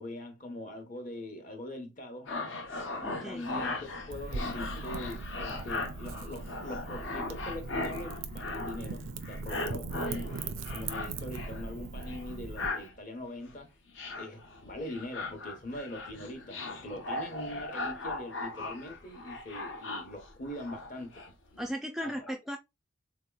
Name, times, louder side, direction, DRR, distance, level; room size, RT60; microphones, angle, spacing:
voice 1, 0.0-2.3 3.2-10.3 10.7-13.7 14.2-21.1 22.0-22.3, left 1 dB, 40° left, 0.9 m, -42 dB
sound 1, 2.3-9.0 9.2-11.7 12.0-12.9 13.4-13.6 13.9-21.3 21.5-21.7, left 2 dB, 70° left, 0.8 m, -38 dB
voice 2, 3.0-3.4 21.6-22.6, equal, ahead, 0.3 m, -36 dB
Wind / Fire, 4.1-12.7, right 3 dB, 90° right, 0.5 m, -40 dB
3.7 x 2.9 x 2.2 m
head